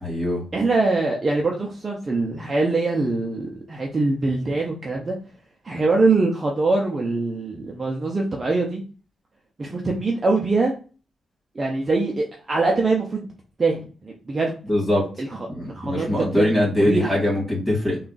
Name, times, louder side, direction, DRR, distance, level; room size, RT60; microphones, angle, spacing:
voice 1, 0.0-0.4 14.7-15.0 15.5-18.0, left 1 dB, 5° left, -7 dB, 2.0 m, -22 dB
voice 2, 0.5-5.2 5.6-8.8 9.6-10.7 11.5-13.3 13.6-14.5 15.2-17.2, right 3 dB, 25° right, -1 dB, 0.5 m, -23 dB
3.5 x 2.3 x 3.9 m, 0.37 s
wide cardioid pair, 145°, 0 cm